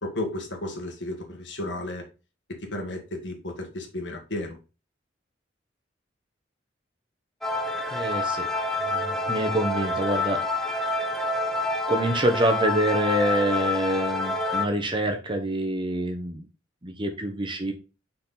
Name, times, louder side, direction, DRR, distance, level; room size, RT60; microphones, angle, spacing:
voice 1, 0.0-2.0 2.5-4.6, left 1 dB, 70° left, 2 dB, 1.6 m, -33 dB
sound 1, 7.4-14.6, left 2 dB, ahead, 0.9 m, -28 dB
voice 2, 7.9-8.5 8.9-11.0 11.9-16.4 16.8-17.7, right 1 dB, 25° right, 5 dB, 1.1 m, -26 dB
6.2 x 4.3 x 4.0 m, 0.31 s
head